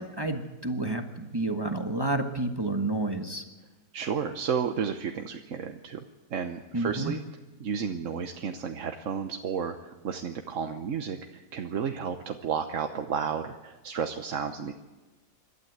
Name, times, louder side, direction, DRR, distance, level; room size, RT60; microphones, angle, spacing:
voice 1, 0.0-3.4 6.7-7.2, right 2 dB, 15° right, 5 dB, 1.2 m, -30 dB
voice 2, 3.9-6.0 6.3-7.2 7.6-14.7, right 7 dB, 55° right, 5 dB, 1.2 m, -32 dB
26.5 x 12.5 x 8.0 m, 1.2 s
omnidirectional pair, 1.7 m